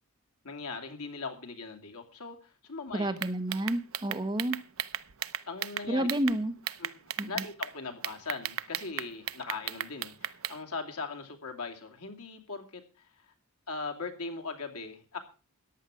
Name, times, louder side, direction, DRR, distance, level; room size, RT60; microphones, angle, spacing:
voice 1, 0.4-3.1 5.5-6.1 6.8-7.0 7.3-13.1 13.7-15.2, left 4 dB, 85° left, 3 dB, 2.7 m, -39 dB
voice 2, 2.9-4.6 5.9-6.5 7.2-7.3, right 1 dB, 20° right, 8 dB, 1.1 m, -30 dB
sound 1, 3.2-6.4 6.7-7.7 8.0-10.6, right 11 dB, 65° right, 0.7 m, -35 dB
14.5 x 11.0 x 5.0 m, 0.34 s
head